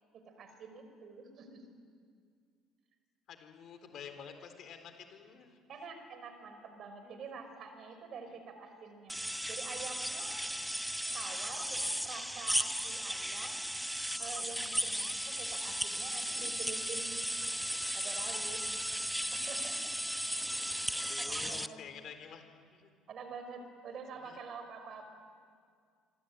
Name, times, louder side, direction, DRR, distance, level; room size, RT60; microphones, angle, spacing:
voice 1, 0.3-1.7 5.7-9.2 9.5-10.4 11.1-13.6 14.2-17.2 17.9-18.6 19.3-20.0 21.0-21.8 23.1-25.0, right 5 dB, 55° right, 7 dB, 5.4 m, -47 dB
voice 2, 3.3-5.6 7.0-7.3 21.0-22.9 24.2-24.4, left 7 dB, 55° left, 7 dB, 4.1 m, -50 dB
sound 1, 9.1-21.7, equal, ahead, 1.0 m, -36 dB
26.0 x 24.0 x 9.5 m, 2.1 s
hypercardioid pair, 65°, 0 cm